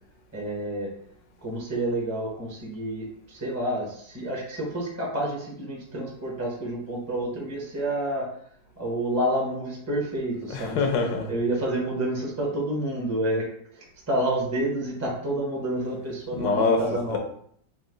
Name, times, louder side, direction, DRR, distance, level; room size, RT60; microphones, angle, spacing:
voice 1, 0.3-0.9 1.4-8.3 8.8-10.8 11.3-13.4 13.7-17.2, right 1 dB, 15° right, -3 dB, 0.5 m, -29 dB
voice 2, 10.5-11.3 16.4-16.8 17.1-17.2, left 4 dB, 85° left, 3 dB, 1.4 m, -24 dB
4.1 x 2.6 x 3.7 m, 0.65 s
omnidirectional pair, 1.9 m